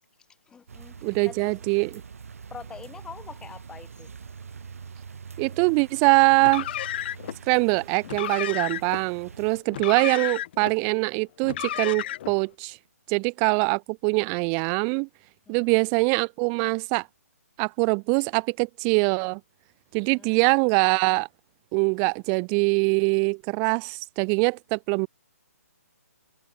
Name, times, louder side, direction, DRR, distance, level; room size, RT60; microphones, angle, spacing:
voice 1, 0.5-1.5 2.5-4.1 9.9-10.0 15.5-15.8 20.0-20.4, left 6 dB, 10° left, 5.5 m, -45 dB
sound 1, 0.7-9.6, right 6 dB, 65° right, 7.1 m, -44 dB
voice 2, 1.0-1.9 5.4-6.7 7.5-12.8 13.1-15.1 15.5-17.1 17.6-19.4 19.9-21.3 21.7-25.1, right 40 dB or more, 25° right, 0.8 m, -23 dB
Car, 6.4-7.4 8.0-9.0 9.7-10.7 11.4-12.4, left 12 dB, 40° left, 2.5 m, -32 dB
figure-of-eight pair, 140°, 8 cm